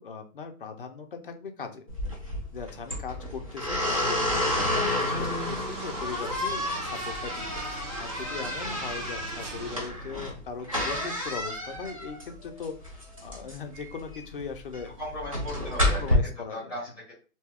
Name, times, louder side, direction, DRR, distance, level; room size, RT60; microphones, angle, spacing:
voice 1, 0.0-1.8 2.5-14.9 15.8-16.8, left 5 dB, 40° left, 5 dB, 0.4 m, -39 dB
sound 1, 1.9-16.1, left 1 dB, 25° right, 0.4 m, -30 dB
sound 2, 4.4-9.9, right 2 dB, 55° right, 1.2 m, -41 dB
voice 2, 15.0-16.2 16.5-17.1, left 1 dB, 5° right, -6 dB, 1.0 m, -37 dB
2.7 x 2.2 x 3.3 m, 0.36 s
hypercardioid pair, 160°, 44 cm